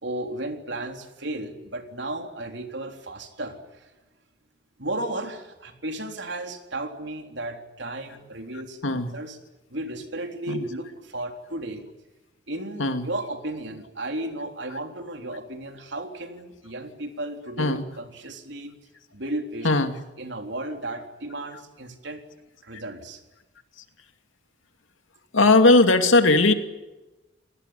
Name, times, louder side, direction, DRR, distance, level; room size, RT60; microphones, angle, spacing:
voice 1, 0.0-3.9 4.8-8.8 9.1-9.4 9.7-11.8 12.5-18.7 19.1-19.7 20.2-22.2 22.6-23.2, right 1 dB, 65° right, 5 dB, 3.7 m, -34 dB
voice 2, 19.6-20.0 22.7-22.8 25.3-26.5, left 2 dB, 85° left, 7 dB, 2.6 m, -18 dB
27.5 x 19.5 x 9.7 m, 1.1 s
head